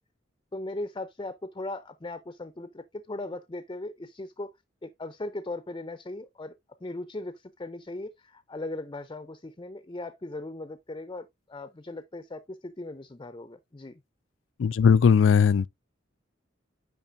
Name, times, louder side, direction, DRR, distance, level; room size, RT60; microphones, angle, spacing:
voice 1, 0.5-4.5 4.8-6.5 6.8-14.0, left 2 dB, 25° left, 0.5 m, -38 dB
voice 2, 14.6-15.7, left 6 dB, 80° left, 0.4 m, -19 dB
8.9 x 5.4 x 2.6 m
head